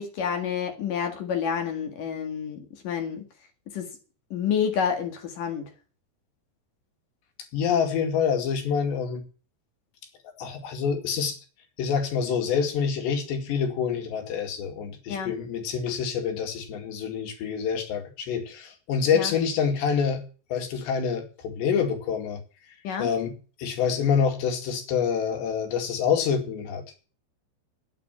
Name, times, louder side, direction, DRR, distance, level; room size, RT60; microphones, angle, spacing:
voice 1, 0.0-3.2 3.7-3.9 4.3-5.7 15.1-15.3 19.1-19.3 22.8-23.1, left 7 dB, 55° left, 5 dB, 3.2 m, -29 dB
voice 2, 7.5-9.2 10.4-11.4 11.8-20.2 20.5-22.4 23.0-27.0, left 7 dB, 80° left, 4 dB, 4.5 m, -26 dB
9.9 x 9.0 x 8.5 m, 0.37 s
omnidirectional pair, 4.9 m